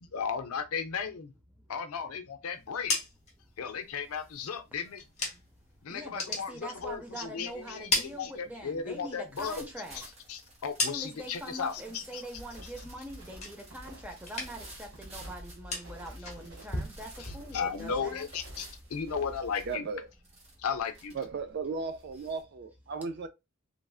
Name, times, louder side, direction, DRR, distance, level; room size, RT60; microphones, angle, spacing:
voice 1, 0.0-1.3 1.7-3.0 3.6-5.0 5.8-9.7 10.3-12.2 17.2-17.3 17.5-19.9 20.6-21.2, left 6 dB, 80° left, 0.5 m, -35 dB
sound 1, 2.6-5.7 6.0-7.3 7.6-8.9 9.3-11.4 11.8-12.3 12.6-13.9 14.2-14.8 15.1-17.9, left 2 dB, 30° left, 0.9 m, -37 dB
sound 2, 2.8-3.1 3.5-22.4, right 2 dB, 30° right, 1.0 m, -55 dB
voice 2, 5.3-10.1 10.8-18.3, right 1 dB, 5° right, 0.6 m, -44 dB
sound 3, 12.3-19.8, equal, 65° right, 1.2 m, -49 dB
voice 3, 19.6-20.1 21.1-23.3, right 4 dB, 45° right, 0.3 m, -36 dB
3.1 x 2.5 x 2.3 m
head